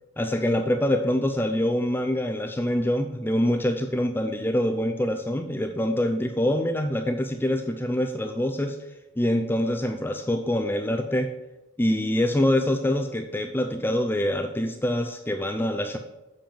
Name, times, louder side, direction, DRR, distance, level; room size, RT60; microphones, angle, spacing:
voice 1, 0.2-8.8 9.2-11.3 11.8-16.0, left 1 dB, 10° left, 4 dB, 0.4 m, -25 dB
7.6 x 5.3 x 7.1 m, 1.0 s
head